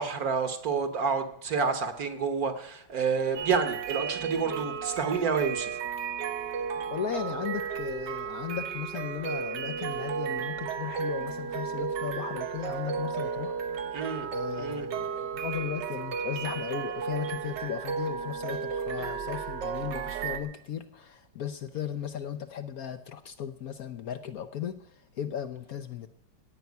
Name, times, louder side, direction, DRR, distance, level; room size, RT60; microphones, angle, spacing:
voice 1, 0.0-5.8 13.9-14.3 14.6-14.9, right 5 dB, 55° right, 1.6 m, -29 dB
sound 1, 3.4-20.4, right 6 dB, 75° right, 1.5 m, -34 dB
voice 2, 6.9-13.6 14.3-26.1, left 9 dB, 60° left, 1.0 m, -36 dB
17.0 x 5.6 x 9.3 m
omnidirectional pair, 2.0 m